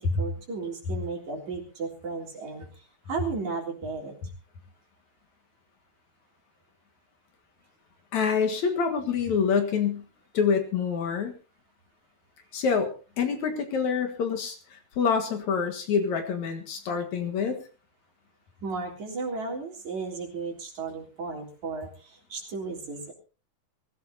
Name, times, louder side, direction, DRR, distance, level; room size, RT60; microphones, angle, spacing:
voice 1, 0.2-2.7 3.1-4.1 18.6-21.9 22.3-23.1, right 4 dB, 60° right, -1 dB, 5.0 m, -34 dB
voice 2, 8.1-10.0 10.3-11.3 12.5-17.6, left 6 dB, 65° left, 6 dB, 3.0 m, -26 dB
23.0 x 16.0 x 2.8 m, 0.35 s
omnidirectional pair, 3.7 m